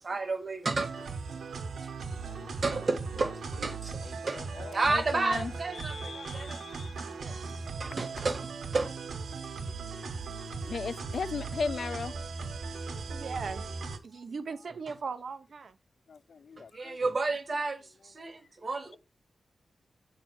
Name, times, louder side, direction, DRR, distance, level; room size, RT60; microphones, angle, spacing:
voice 1, 0.0-0.9 2.6-4.4 4.7-6.6 7.2-7.3 7.8-8.9 16.7-19.0, right 3 dB, 35° right, 1.2 m, -31 dB
sound 1, 0.7-14.0, right 4 dB, 80° right, 1.1 m, -38 dB
voice 2, 4.6-5.5 5.8-6.9 10.7-12.1 16.1-17.0, left 5 dB, 55° left, 0.3 m, -37 dB
voice 3, 13.1-13.6 14.0-15.7, right 5 dB, 50° right, 0.8 m, -38 dB
8.2 x 3.3 x 6.2 m
wide cardioid pair, 175°, 0 cm